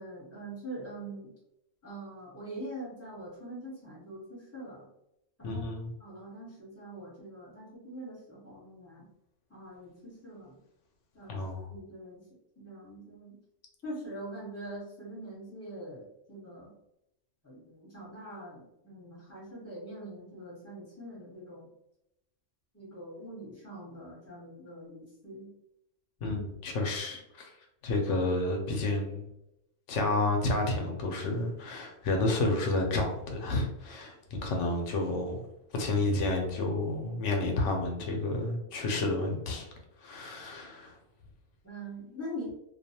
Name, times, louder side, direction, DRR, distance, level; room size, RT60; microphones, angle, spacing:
voice 1, 0.0-1.3 1.8-4.8 5.4-5.6 6.0-9.1 9.5-10.6 11.1-12.2 12.6-13.3 13.8-16.7 17.4-21.7 22.7-25.5 26.2-26.4 41.6-42.5, right 1 dB, 15° left, -6 dB, 1.1 m, -43 dB
voice 2, 5.4-5.9 11.3-11.7 26.2-27.5 27.8-29.3 29.9-35.4 35.7-39.7 40.0-40.9, left 2 dB, 85° left, 2 dB, 1.0 m, -30 dB
2.5 x 2.3 x 2.8 m, 0.84 s
omnidirectional pair, 1.2 m